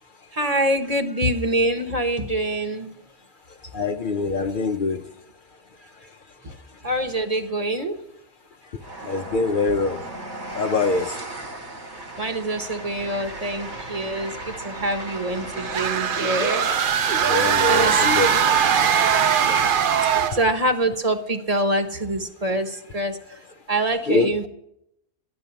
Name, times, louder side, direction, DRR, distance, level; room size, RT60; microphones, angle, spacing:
voice 1, 0.3-2.9 5.8-5.9 6.4-6.5 6.8-8.0 12.2-16.7 17.7-18.0 18.3-18.4 19.4-19.7 20.0-24.5, right 1 dB, 35° right, 6 dB, 1.1 m, -25 dB
voice 2, 3.7-5.0 9.0-10.0 10.5-11.2 17.3-18.3 24.1-24.3, left 3 dB, 55° left, 7 dB, 0.7 m, -23 dB
Train, 8.8-19.3, right 2 dB, 85° right, 2.4 m, -36 dB
sound 1, 15.6-20.5, right 8 dB, 55° right, 0.8 m, -20 dB
11.5 x 10.5 x 6.9 m, 0.80 s
omnidirectional pair, 1.2 m